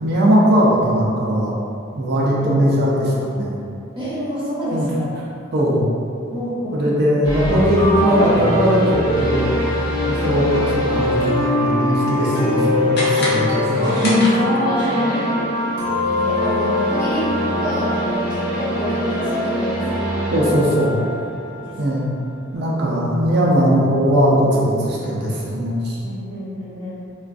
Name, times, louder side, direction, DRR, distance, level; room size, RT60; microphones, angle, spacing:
voice 1, 0.0-1.5 2.0-3.6 4.7-4.9 5.5-5.9 6.7-9.5 10.1-14.3 20.3-21.0 21.8-22.1 22.5-26.0, equal, 55° right, -5 dB, 0.4 m, -19 dB
voice 2, 3.9-5.1 6.3-6.9 14.3-17.3 17.6-20.1 21.6-22.0 22.5-22.8 26.0-26.9, equal, 15° right, -13 dB, 0.7 m, -27 dB
sound 1, 7.2-22.1, left 1 dB, 20° left, 1.0 m, -22 dB
sound 2, 12.9-14.8, left 1 dB, 55° left, 0.6 m, -27 dB
2.4 x 2.3 x 2.4 m, 2.5 s
head